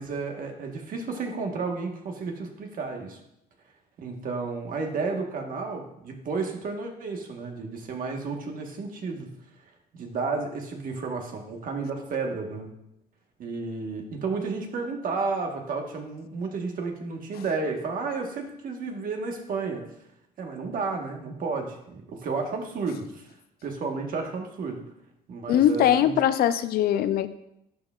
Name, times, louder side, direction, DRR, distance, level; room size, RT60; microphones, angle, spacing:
voice 1, 0.0-3.2 4.0-9.3 9.9-12.7 13.4-19.8 20.4-23.3 23.6-24.8 25.3-26.1, right 4 dB, 55° right, 3 dB, 1.3 m, -32 dB
voice 2, 25.5-27.3, left 10 dB, 65° left, 12 dB, 0.4 m, -21 dB
12.0 x 4.7 x 2.4 m, 0.81 s
cardioid pair, 110°, 17 cm